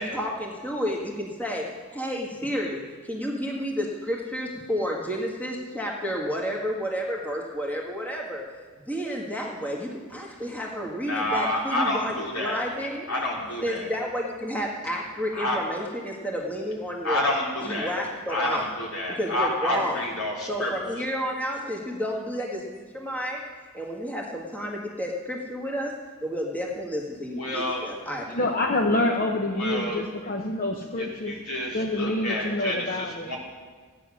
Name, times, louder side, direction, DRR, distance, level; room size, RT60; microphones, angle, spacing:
voice 1, 0.0-8.4 8.9-13.1 13.6-17.2 17.6-18.7 19.1-20.1 20.5-23.4 23.7-28.3, equal, 5° left, -2 dB, 1.7 m, -31 dB
voice 2, 11.1-12.6 13.1-13.8 15.4-15.6 17.0-17.9 18.3-20.7 27.4-27.8 29.6-30.0 31.3-33.4, left 1 dB, 80° left, -3 dB, 3.6 m, -28 dB
voice 3, 28.3-31.4 31.7-33.3, left 2 dB, 40° left, 2 dB, 0.8 m, -27 dB
15.5 x 9.8 x 6.3 m, 1.5 s
head